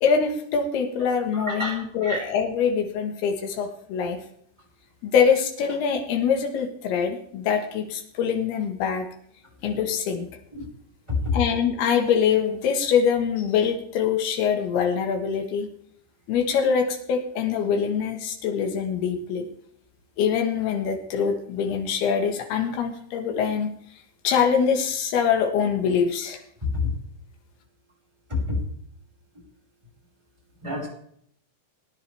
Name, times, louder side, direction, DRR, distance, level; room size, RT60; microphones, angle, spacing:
voice 1, 0.0-4.2 5.0-9.1 9.6-10.3 11.3-15.7 16.3-19.5 20.2-23.7 24.2-26.4, left 7 dB, 85° left, 3 dB, 3.5 m, -24 dB
voice 2, 1.3-2.3 10.5-10.7 11.1-11.4 26.6-26.9 28.3-28.6 30.6-30.9, left 3 dB, 5° right, -4 dB, 5.4 m, -27 dB
20.0 x 10.5 x 3.5 m, 0.67 s
omnidirectional pair, 4.4 m